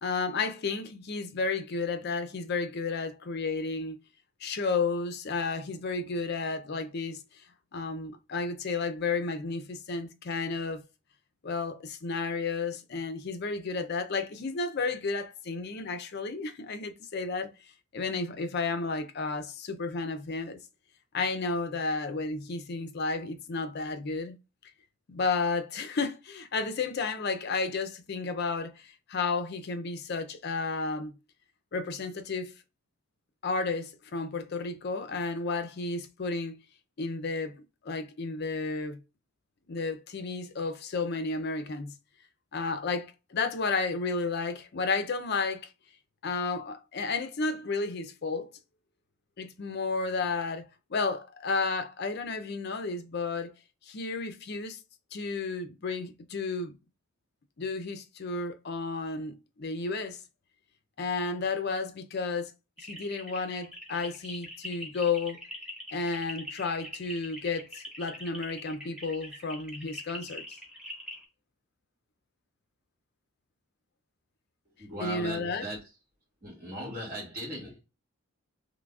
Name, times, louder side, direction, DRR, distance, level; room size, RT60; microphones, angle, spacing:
voice 1, 0.0-4.0 4.4-7.2 7.7-10.8 11.4-17.5 17.9-20.6 21.1-24.4 25.1-31.1 31.7-32.5 33.4-36.6 37.0-39.0 39.7-41.9 42.5-45.7 46.2-48.5 49.4-53.5 53.9-54.8 55.1-56.7 57.6-60.2 61.0-62.5 62.8-65.4 65.9-70.4 75.0-75.6, left 4 dB, 45° left, 0.5 m, -32 dB
sound 1, 62.8-71.2, left 1 dB, 5° right, 0.9 m, -43 dB
voice 2, 74.8-75.9 76.4-77.8, equal, 40° right, 1.9 m, -38 dB
3.8 x 3.2 x 2.3 m
head